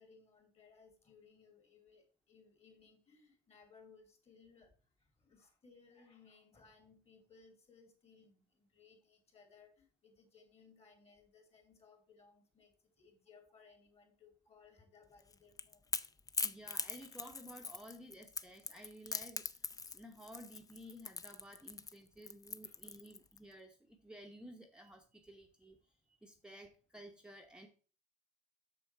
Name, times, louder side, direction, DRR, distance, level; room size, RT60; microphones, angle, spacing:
voice 1, 0.0-4.7 5.0-15.9 22.2-22.3 22.6-22.8, left 5 dB, 35° left, 4 dB, 2.8 m, -64 dB
Crackle / Crack, 15.2-23.4, left 4 dB, 20° left, 0.5 m, -42 dB
voice 2, 16.4-27.7, equal, 5° right, 2 dB, 0.8 m, -54 dB
6.9 x 6.5 x 4.6 m, 0.39 s
cardioid pair, 110°, 17 cm